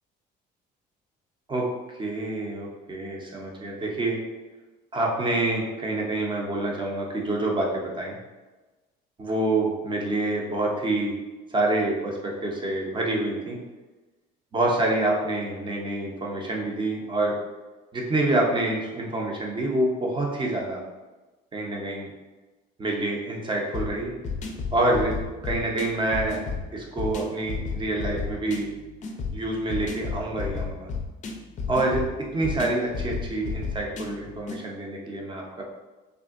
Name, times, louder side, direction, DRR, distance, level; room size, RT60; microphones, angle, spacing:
voice 1, 2.0-4.2 4.9-8.2 9.2-11.1 11.5-13.6 14.5-17.3 17.9-20.8 21.5-22.1 22.8-24.1 24.7-25.2 25.4-26.5 26.7-28.7 29.3-30.9 31.7-32.0 32.3-35.6, right 2 dB, 25° right, -1 dB, 0.7 m, -27 dB
sound 1, 23.7-34.6, left 5 dB, 40° left, 0.5 m, -33 dB
3.5 x 2.1 x 2.4 m, 1.2 s
cardioid pair, 110°, 20 cm